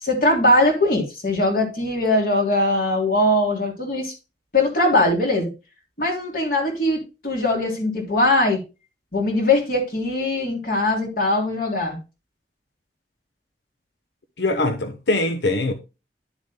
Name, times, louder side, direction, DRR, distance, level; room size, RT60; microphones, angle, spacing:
voice 1, 0.0-4.1 4.5-5.5 6.0-8.6 9.1-12.0, left 1 dB, 55° left, 3.3 m, -21 dB
voice 2, 14.4-15.7, left 2 dB, 90° left, 1.0 m, -22 dB
11.5 x 7.1 x 2.2 m
head